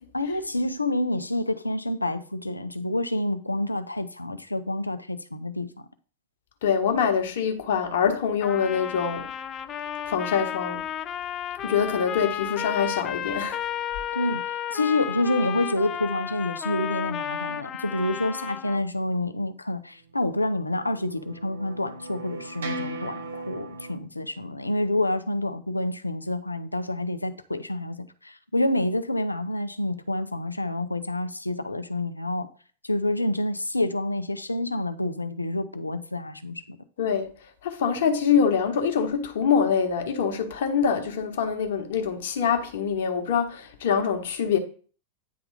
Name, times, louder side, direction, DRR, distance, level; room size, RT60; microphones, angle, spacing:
voice 1, 0.1-5.7 14.1-32.5 32.8-36.8, left 1 dB, 85° left, 0.6 m, -28 dB
voice 2, 6.6-9.3 10.1-10.8 11.6-13.7 37.0-37.3 37.6-44.6, left 7 dB, 55° left, 1.3 m, -24 dB
Trumpet, 8.4-18.8, left 10 dB, 30° left, 0.4 m, -33 dB
sound 1, 20.4-24.0, right 2 dB, 65° right, 1.1 m, -38 dB
9.4 x 3.6 x 4.9 m
figure-of-eight pair, 90°, 0 cm